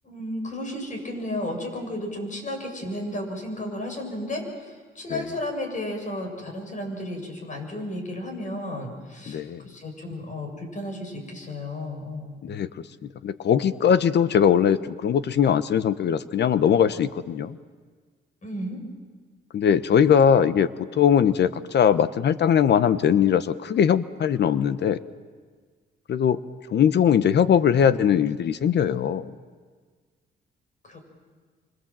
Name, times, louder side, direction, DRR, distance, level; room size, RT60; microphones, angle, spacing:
voice 1, 0.0-12.4 18.4-18.8 30.8-31.0, left 1 dB, 40° left, 4 dB, 7.2 m, -33 dB
voice 2, 9.3-9.6 12.4-12.7 13.2-17.6 19.5-20.7 21.0-25.0 26.1-26.4 26.7-29.3, left 8 dB, 60° left, 14 dB, 1.1 m, -20 dB
27.5 x 25.5 x 7.6 m, 1.5 s
cardioid pair, 90°, 20 cm